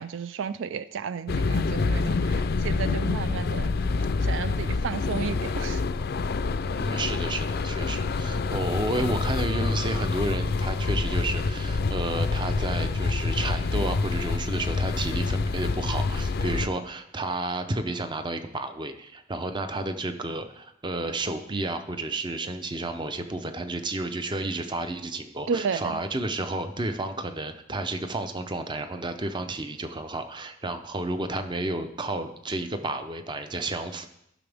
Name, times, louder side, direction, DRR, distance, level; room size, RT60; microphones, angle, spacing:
voice 1, 0.0-2.2 2.6-3.7 4.3-5.8 25.5-25.8, right 6 dB, 75° right, 0.3 m, -32 dB
sound 1, 1.3-16.7, left 4 dB, 55° left, 0.4 m, -27 dB
voice 2, 6.7-34.1, right 2 dB, 25° right, 0.6 m, -31 dB
14.5 x 6.0 x 3.5 m
head